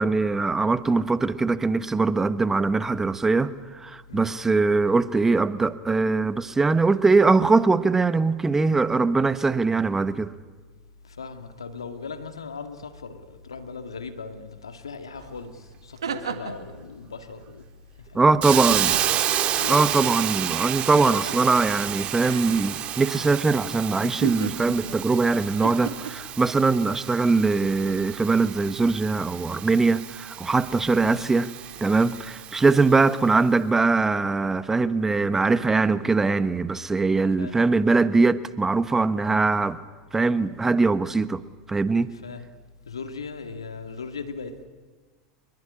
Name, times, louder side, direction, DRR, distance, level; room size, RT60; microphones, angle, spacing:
voice 1, 0.0-10.3 18.1-19.0 19.7-31.5 31.8-39.8 40.1-41.4 41.7-42.1, right 3 dB, 15° right, 1.3 m, -22 dB
voice 2, 11.0-17.7 18.0-19.0 19.6-19.8 23.1-23.4 31.0-31.3 37.4-37.6 42.1-42.5 42.9-44.6, left 5 dB, 85° left, 2.2 m, -38 dB
sound 1, 15.2-15.3 15.7-16.7 18.5-19.4 20.0-20.3 21.0-21.5 22.2-22.5 24.0-25.0 25.6-26.1, right 7 dB, 85° right, 1.9 m, -33 dB
Hiss, 18.4-33.2, right 11 dB, 45° right, 2.4 m, -31 dB
26.0 x 22.0 x 10.0 m
hypercardioid pair, 85°, 3 cm